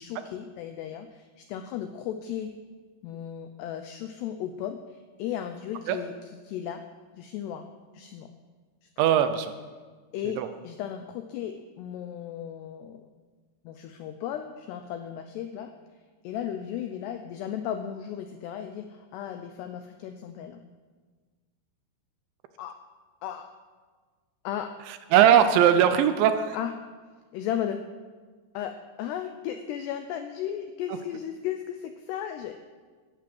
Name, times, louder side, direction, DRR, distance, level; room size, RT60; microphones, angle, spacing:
voice 1, 0.0-2.5 3.0-6.1 6.4-6.9 7.1-7.7 7.9-8.3 8.8-8.9 10.1-13.1 13.6-15.8 16.2-20.6 22.6-22.8 23.2-23.5 24.4-24.7 26.5-26.7 27.3-27.8 28.5-32.6, left 10 dB, 85° left, 8 dB, 2.4 m, -35 dB
voice 2, 9.0-9.5 10.4-10.5 25.1-26.6, right 9 dB, 80° right, 10 dB, 2.8 m, -19 dB
13.0 x 11.5 x 7.7 m, 1.4 s
omnidirectional pair, 5.6 m